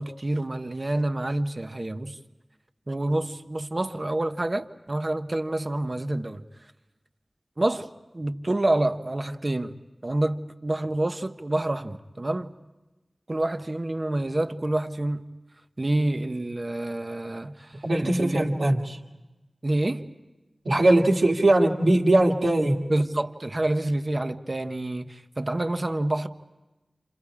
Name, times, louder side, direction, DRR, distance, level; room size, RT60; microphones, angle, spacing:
voice 1, 0.0-2.2 2.9-6.4 7.6-12.5 13.3-15.2 15.8-18.4 19.6-20.1 22.9-26.3, right 1 dB, 40° right, 0.9 m, -28 dB
voice 2, 17.8-19.0 20.7-22.8, right 1 dB, 85° right, 1.8 m, -20 dB
29.5 x 27.5 x 4.9 m
wide cardioid pair, 65°, 0 cm